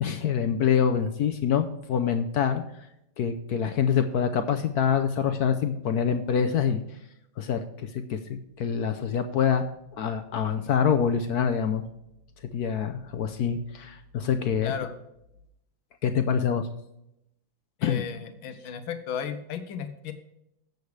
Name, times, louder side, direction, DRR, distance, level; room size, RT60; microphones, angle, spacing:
voice 1, 0.0-2.6 3.2-6.8 7.4-9.6 9.9-11.8 12.4-14.7 16.0-16.7 17.8-18.0, left 7 dB, 65° left, 8 dB, 1.0 m, -25 dB
voice 2, 14.6-14.9 17.8-20.1, left 8 dB, 85° left, 9 dB, 1.7 m, -34 dB
12.0 x 8.0 x 3.3 m, 0.80 s
omnidirectional pair, 2.1 m